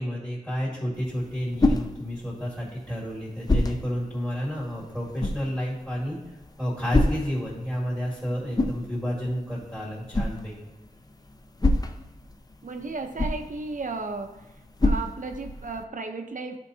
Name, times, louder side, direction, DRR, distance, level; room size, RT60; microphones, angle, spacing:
voice 1, 0.0-6.2 6.6-10.5, equal, 5° left, -8 dB, 2.2 m, -30 dB
sound 1, 0.9-15.8, left 2 dB, 30° left, 0.6 m, -30 dB
voice 2, 12.6-14.5 14.8-16.6, right 3 dB, 70° right, 6 dB, 0.7 m, -34 dB
12.0 x 4.5 x 2.7 m, 1.0 s
wide cardioid pair, 80°, 14 cm